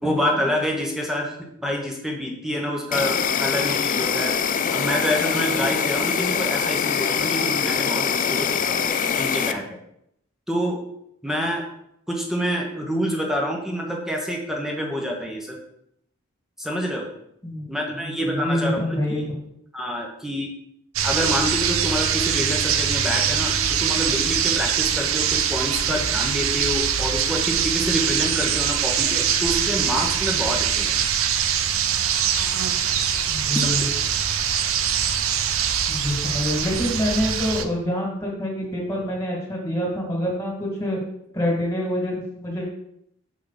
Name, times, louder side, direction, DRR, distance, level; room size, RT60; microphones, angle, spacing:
voice 1, 0.0-4.4 4.7-9.7 10.5-10.8 11.2-11.6 12.1-15.6 16.6-17.1 17.7-19.2 19.7-20.5 21.0-31.0 33.5-33.9, equal, ahead, 0 dB, 1.2 m, -27 dB
Insect, 2.9-9.5, left 7 dB, 40° left, 0.4 m, -23 dB
voice 2, 18.4-19.3 33.3-33.8 35.9-41.0 41.3-42.7, left 1 dB, 15° left, -2 dB, 2.2 m, -26 dB
sound 1, 21.0-37.7, right 8 dB, 80° right, 0.6 m, -23 dB
6.4 x 5.2 x 4.1 m, 0.75 s
head